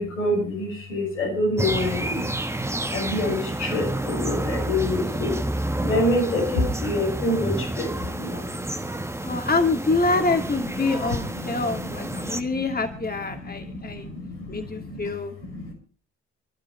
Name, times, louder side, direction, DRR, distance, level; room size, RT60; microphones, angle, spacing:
voice 1, 0.0-2.3 2.9-5.4 5.8-8.5 10.4-10.5 11.1-12.8 13.3-15.1 15.4-15.7, left 1 dB, 90° left, -3 dB, 5.6 m, -27 dB
sound 1, 1.6-12.4, right 1 dB, 5° right, 1.5 m, -29 dB
voice 2, 9.2-14.1 14.5-15.3, left 3 dB, 25° left, 5 dB, 2.5 m, -26 dB
27.5 x 12.0 x 3.2 m, 0.37 s
hypercardioid pair, 40°, 36 cm